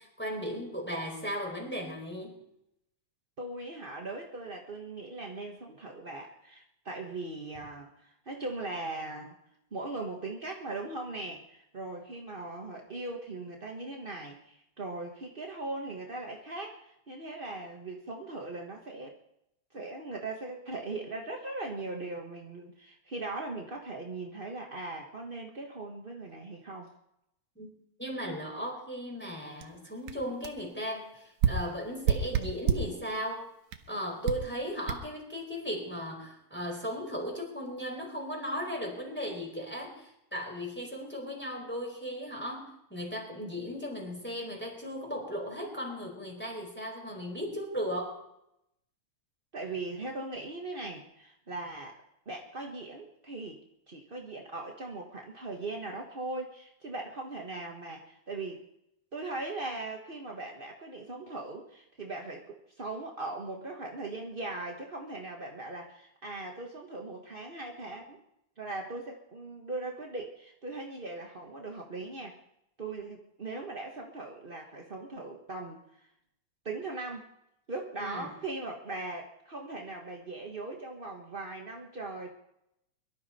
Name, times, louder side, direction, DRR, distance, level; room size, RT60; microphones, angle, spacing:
voice 1, 0.0-2.4 27.6-27.7 28.0-33.4 33.9-48.2 78.0-78.3, equal, 5° left, 0 dB, 4.4 m, -36 dB
voice 2, 3.4-9.3 9.7-19.2 19.7-26.9 49.5-52.0 52.2-53.6 53.9-58.6 59.1-68.2 68.6-72.4 72.8-76.1 76.6-77.3 77.7-82.3, right 2 dB, 40° right, 0 dB, 0.7 m, -39 dB
sound 1, 29.6-29.7 30.1-30.2 30.4-30.6 31.4-33.0 33.7-33.9 34.3-34.5 34.9-35.0, right 8 dB, 85° right, 2.4 m, -28 dB
23.5 x 12.5 x 4.3 m, 0.81 s
omnidirectional pair, 3.3 m